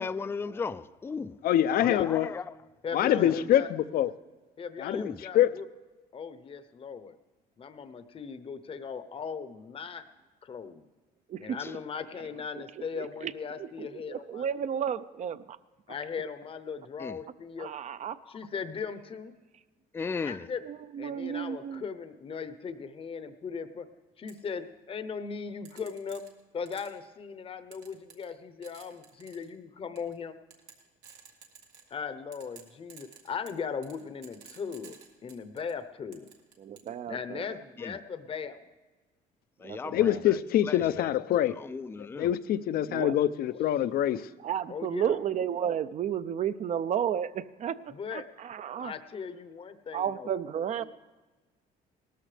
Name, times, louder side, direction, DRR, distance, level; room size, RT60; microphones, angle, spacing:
voice 1, 0.0-1.4 1.8-2.5 3.0-3.5 4.9-5.3 11.6-11.7 17.0-17.2 19.9-20.5 37.8-38.0 39.6-40.4 40.6-42.3, left 5 dB, 15° left, 0.3 m, -37 dB
voice 2, 1.4-2.3 2.9-4.1 4.8-5.5 39.9-41.6 42.0-44.3, left 11 dB, 60° left, 0.5 m, -25 dB
voice 3, 2.8-3.7 4.6-5.6 6.1-7.2 7.6-10.0 10.4-10.8 11.4-14.4 15.9-17.7 18.3-19.3 20.2-20.6 21.0-23.9 24.2-26.2 26.5-30.4 31.9-35.0 35.2-36.3 37.1-38.7 44.7-45.1 47.9-48.2 48.8-50.3, left 6 dB, 35° left, 0.8 m, -38 dB
voice 4, 11.3-11.8 12.5-13.3 13.6-15.6 17.6-18.2 20.6-21.8 36.6-37.6 39.6-40.2 42.9-43.1 44.4-48.9 49.9-50.8, right 9 dB, 45° right, 0.5 m, -33 dB
sound 1, 24.3-24.4 25.7-27.0 27.7-28.4 28.6-29.5 30.0-30.1 30.5-32.0 32.3-35.7 36.1-36.9, right 7 dB, 90° right, 1.9 m, -52 dB
18.0 x 13.5 x 3.3 m
cardioid pair, 110°, 17 cm